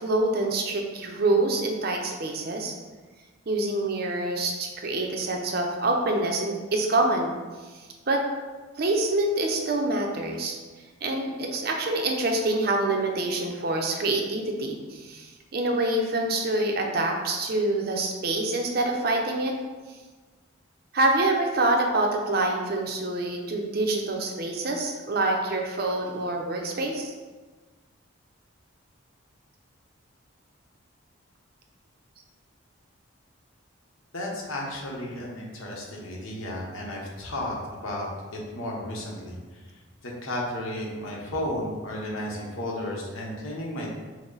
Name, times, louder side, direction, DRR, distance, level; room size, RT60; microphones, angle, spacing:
voice 1, 0.0-2.7 3.5-7.4 8.1-8.2 8.8-10.6 11.0-19.6 20.9-27.1, right 2 dB, 50° right, 2 dB, 0.5 m, -26 dB
voice 2, 34.1-38.1 38.5-39.4 40.0-44.0, left 1 dB, 80° left, -2 dB, 1.0 m, -33 dB
6.0 x 2.1 x 3.9 m, 1.3 s
head